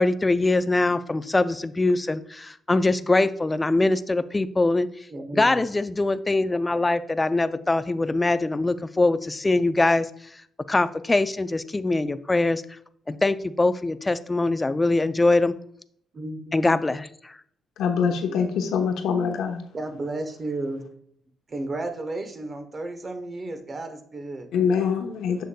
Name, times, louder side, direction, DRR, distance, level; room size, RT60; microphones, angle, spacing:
voice 1, 0.0-4.9 5.3-10.1 10.7-12.6 13.1-15.5 16.5-17.4, left 2 dB, 20° left, 13 dB, 0.3 m, -23 dB
voice 2, 5.1-5.6 16.1-16.7 19.7-20.9 21.5-24.5, right 2 dB, 35° right, 7 dB, 0.9 m, -33 dB
voice 3, 17.8-19.6 24.5-25.4, left 6 dB, 80° left, 4 dB, 1.0 m, -24 dB
6.7 x 6.3 x 2.2 m, 0.67 s
cardioid pair, 90°, 0 cm